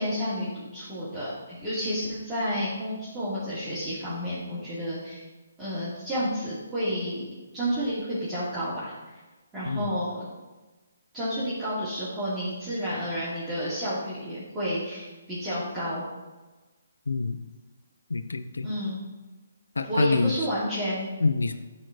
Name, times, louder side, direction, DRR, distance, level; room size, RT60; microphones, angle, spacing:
voice 1, 0.0-5.2 5.6-7.2 7.5-8.9 9.5-10.3 11.1-16.0 18.6-19.0 19.9-21.1, equal, 10° right, -15 dB, 2.6 m, -30 dB
voice 2, 17.1-17.4 18.1-18.7 19.8-20.3 21.2-21.5, left 3 dB, 90° left, 10 dB, 0.6 m, -26 dB
8.9 x 4.4 x 4.9 m, 1.2 s
hypercardioid pair, 155°, 0 cm